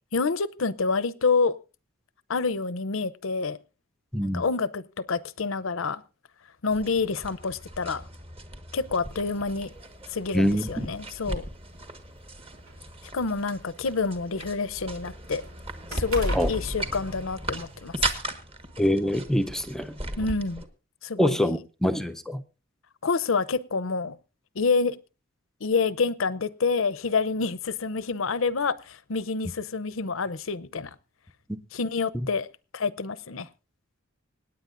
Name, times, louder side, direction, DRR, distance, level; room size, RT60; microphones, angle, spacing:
voice 1, 0.1-1.6 2.3-3.6 4.2-4.8 5.1-6.0 6.6-8.0 8.7-9.7 10.1-11.4 13.1-15.4 15.9-17.9 20.2-20.6 21.0-21.6 23.0-24.2 24.5-25.0 25.6-30.9 31.7-32.5 32.7-33.5, left 4 dB, 70° left, 18 dB, 0.7 m, -27 dB
voice 2, 4.1-4.4 10.3-10.9 16.3-16.5 18.8-20.0 21.2-22.4 31.5-31.6 32.1-32.3, equal, ahead, 7 dB, 0.6 m, -25 dB
sound 1, 6.7-20.7, right 2 dB, 30° right, 1.4 m, -37 dB
sound 2, 9.1-9.3 10.3-10.4 10.9-11.0 11.9-13.9 14.3-17.7 18.1-18.3, equal, 90° right, 3.3 m, -35 dB
26.0 x 9.7 x 2.5 m, 0.31 s
head